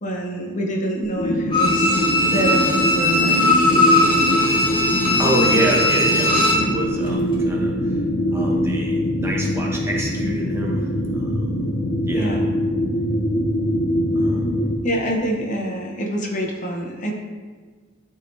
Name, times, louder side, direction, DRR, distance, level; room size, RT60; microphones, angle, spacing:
voice 1, 0.0-2.0 2.3-4.5 12.1-12.5 14.8-17.1, right 1 dB, 40° left, 1 dB, 0.8 m, -26 dB
sound 1, 1.2-14.8, equal, 75° left, 0.7 m, -23 dB
Bowed string instrument, 1.5-6.7 7.1-7.2, left 1 dB, 25° left, 1.6 m, -19 dB
voice 2, 5.0-8.0 8.3-11.6 12.1-12.3 14.1-14.6, right 1 dB, 10° right, -2 dB, 0.8 m, -27 dB
11.5 x 4.0 x 2.7 m, 1.5 s
head